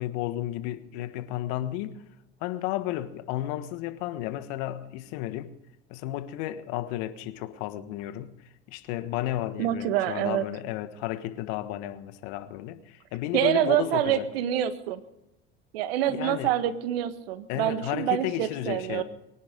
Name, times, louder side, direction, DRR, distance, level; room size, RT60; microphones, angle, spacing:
voice 1, 0.0-2.0 2.4-5.5 5.9-8.4 8.7-14.3 16.1-16.6 17.5-19.0, left 14 dB, 70° left, 1.5 m, -33 dB
voice 2, 9.6-10.4 13.3-15.0 15.7-19.0, right 11 dB, 80° right, 1.6 m, -26 dB
24.0 x 10.5 x 5.2 m
hypercardioid pair, 70°, 30 cm